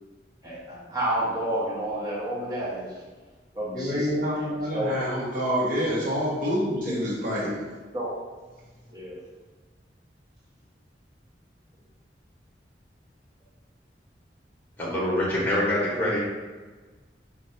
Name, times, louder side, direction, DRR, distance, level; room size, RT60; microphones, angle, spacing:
voice 1, 0.4-3.0 3.5-4.1 4.3-5.1 6.8-7.0 7.9-8.1 8.9-9.2, right 1 dB, 20° right, -7 dB, 1.1 m, -30 dB
voice 2, 3.7-7.6, equal, 50° right, -7 dB, 1.3 m, -27 dB
voice 3, 14.8-16.2, left 1 dB, 10° left, -5 dB, 1.2 m, -25 dB
4.2 x 2.6 x 4.3 m, 1.3 s
head